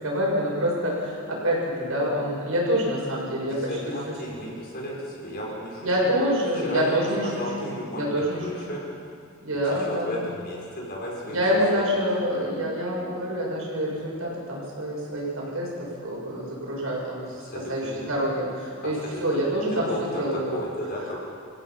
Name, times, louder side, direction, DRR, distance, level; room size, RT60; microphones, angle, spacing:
voice 1, 0.0-4.0 4.4-4.5 5.8-7.3 7.6-8.8 9.4-10.3 11.2-20.6, equal, 75° right, -3 dB, 6.8 m, -27 dB
voice 2, 3.5-6.1 6.5-8.8 9.7-11.4 11.7-12.0 17.4-18.2 18.8-21.2, equal, 45° left, -4 dB, 5.8 m, -34 dB
28.0 x 16.0 x 5.9 m, 2.4 s
head